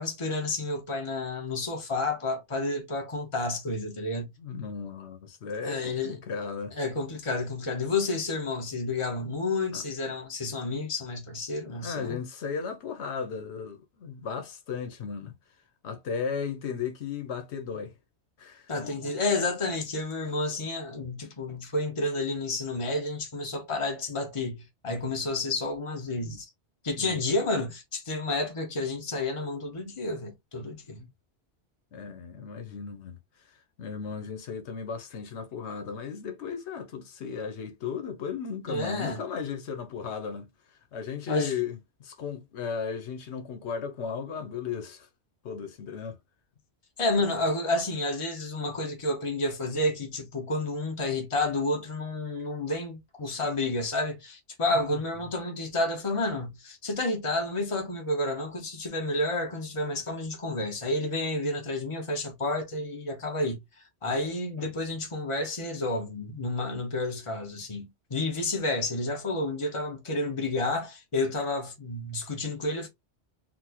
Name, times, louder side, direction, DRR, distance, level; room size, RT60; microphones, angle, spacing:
voice 1, 0.0-4.3 5.6-6.2 6.7-12.2 18.7-26.4 26.8-31.0 38.7-39.2 41.3-41.5 47.0-63.6 64.0-72.9, left 2 dB, 30° left, 1.0 m, -30 dB
voice 2, 4.4-6.7 9.7-9.8 11.7-15.3 15.8-17.9 18.4-18.7 27.0-27.2 31.0-31.1 31.9-33.2 33.8-40.5 40.9-45.1 45.4-46.2 54.8-55.0, left 6 dB, 80° left, 1.0 m, -35 dB
4.1 x 2.1 x 2.7 m
omnidirectional pair, 1.1 m